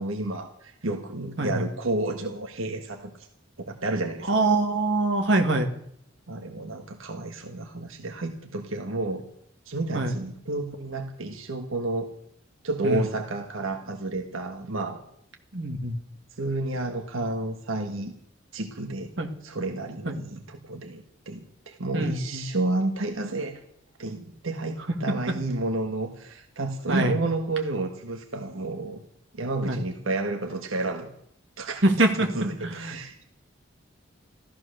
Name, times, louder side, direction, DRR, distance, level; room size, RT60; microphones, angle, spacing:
voice 1, 0.0-3.3 3.6-4.4 6.3-9.2 9.6-12.1 12.6-15.0 16.4-18.1 18.5-19.1 19.4-23.6 24.0-29.0 29.3-31.1 31.6-31.8 32.1-33.2, right 2 dB, 85° right, 4 dB, 1.5 m, -31 dB
voice 2, 4.3-5.7 9.9-10.2 12.8-13.0 15.5-16.0 19.2-19.3 20.0-20.2 21.9-22.5 26.9-27.2 29.7-29.8 31.8-32.3 32.6-33.0, right 2 dB, 60° right, 3 dB, 2.0 m, -24 dB
14.0 x 13.5 x 6.6 m, 0.69 s
head